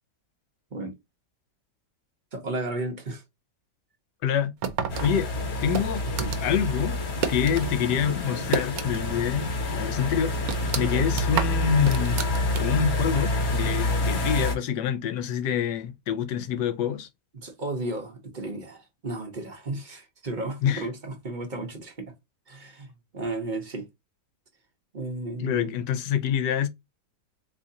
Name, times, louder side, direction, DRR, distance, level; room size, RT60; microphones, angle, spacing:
voice 1, 2.3-3.2 5.1-5.2 10.8-11.1 17.3-22.1 22.5-23.9 24.9-25.7, right 2 dB, 40° right, 0.7 m, -34 dB
voice 2, 4.2-4.5 5.0-5.3 5.6-6.0 6.4-7.0 7.3-10.3 10.7-12.2 12.6-17.1 20.6-20.9 25.4-26.7, left 8 dB, 80° left, 1.3 m, -26 dB
sound 1, 4.6-7.7 8.0-9.2 9.5-9.6 10.1-12.9, right 7 dB, 65° right, 1.0 m, -31 dB
sound 2, 4.9-14.6, left 2 dB, 60° left, 1.6 m, -28 dB
3.7 x 3.1 x 2.6 m
omnidirectional pair, 1.8 m